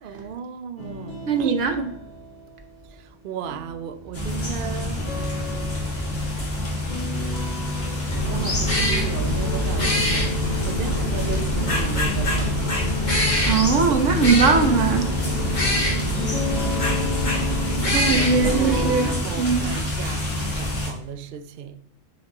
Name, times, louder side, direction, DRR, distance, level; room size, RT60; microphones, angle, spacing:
voice 1, 0.0-2.0 2.9-5.1 8.1-13.0 13.5-14.0 18.1-21.8, right 7 dB, 55° right, 0.6 m, -35 dB
sound 1, 0.8-3.2 3.4-6.4 6.9-14.0 14.2-19.2, left 4 dB, 55° left, 2.7 m, -35 dB
voice 2, 1.3-1.7 13.5-15.1 17.9-19.6, right 5 dB, 75° right, 1.4 m, -20 dB
sound 2, 4.1-20.9, left 1 dB, 70° left, 2.7 m, -28 dB
sound 3, 8.1-18.9, equal, 90° left, 2.5 m, -25 dB
9.6 x 5.1 x 2.9 m
omnidirectional pair, 1.3 m